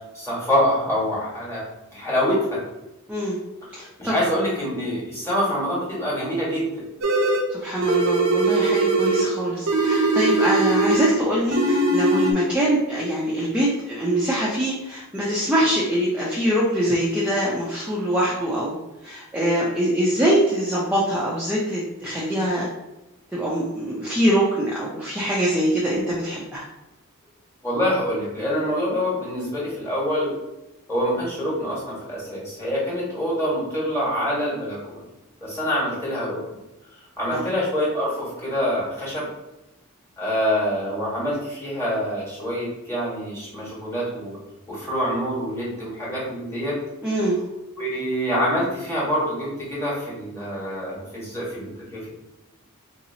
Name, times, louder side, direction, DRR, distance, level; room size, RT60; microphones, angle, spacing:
voice 1, 0.1-1.6 1.9-2.6 4.0-6.8 27.6-30.3 30.9-35.0 35.4-36.4 37.2-39.3 40.2-44.4 44.7-46.8 47.8-52.1, equal, 10° left, -6 dB, 1.5 m, -25 dB
voice 2, 3.7-4.1 7.5-18.8 19.0-22.7 23.3-26.6 37.3-37.5 47.0-47.4, equal, 5° right, -7 dB, 0.5 m, -23 dB
sound 1, 7.0-7.5 7.8-9.3 9.7-11.2 11.5-12.3, right 2 dB, 60° right, 0.6 m, -20 dB
3.9 x 2.9 x 2.7 m, 0.97 s
head